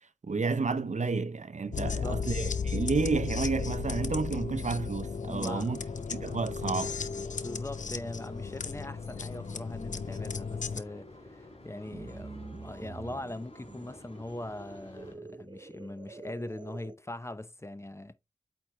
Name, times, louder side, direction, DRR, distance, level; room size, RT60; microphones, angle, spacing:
voice 1, 0.2-5.8 6.1-7.0, right 4 dB, 75° right, 0.7 m, -31 dB
sound 1, 1.7-10.8, left 5 dB, 85° left, 0.6 m, -35 dB
voice 2, 1.8-2.3 5.3-5.9 7.4-18.1, left 1 dB, 20° left, 0.7 m, -41 dB
sound 2, 5.4-15.2, left 1 dB, 55° left, 4.0 m, -51 dB
sound 3, 11.9-17.0, right 3 dB, 40° right, 0.5 m, -47 dB
8.4 x 4.6 x 3.3 m
wide cardioid pair, 45°, 12 cm